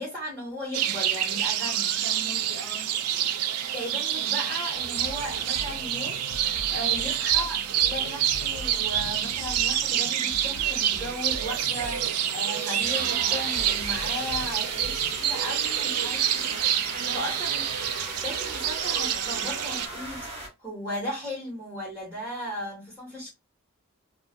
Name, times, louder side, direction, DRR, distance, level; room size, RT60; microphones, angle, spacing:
voice 1, 0.0-2.0 3.7-17.6 18.1-23.3, equal, 10° right, 1.4 m, -36 dB
sound 1, 0.7-19.9, right 10 dB, 85° right, 0.4 m, -27 dB
voice 2, 2.0-2.9 6.7-7.0 16.9-17.2, equal, 55° right, 0.9 m, -41 dB
sound 2, 4.7-15.2, left 3 dB, 80° left, 0.4 m, -43 dB
sound 3, 11.2-20.5, right 1 dB, 30° right, 1.0 m, -38 dB
2.4 x 2.2 x 2.4 m
head